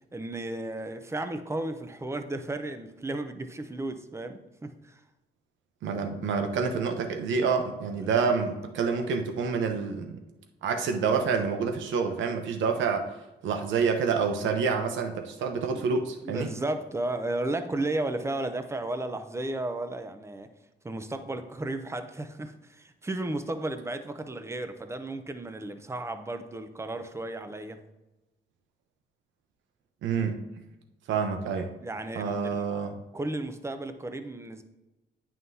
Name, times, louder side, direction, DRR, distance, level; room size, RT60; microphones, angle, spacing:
voice 1, 0.1-5.0 8.0-8.1 15.7-16.0 16.2-20.5 20.8-27.8 31.8-32.6 33.1-34.6, right 2 dB, 15° right, 9 dB, 0.7 m, -34 dB
voice 2, 5.8-10.2 10.6-13.1 13.4-16.5 30.0-30.4 31.1-31.7 32.1-32.9, right 5 dB, 80° right, 5 dB, 0.9 m, -28 dB
9.1 x 5.8 x 2.8 m, 1.0 s
cardioid pair, 80°, 19 cm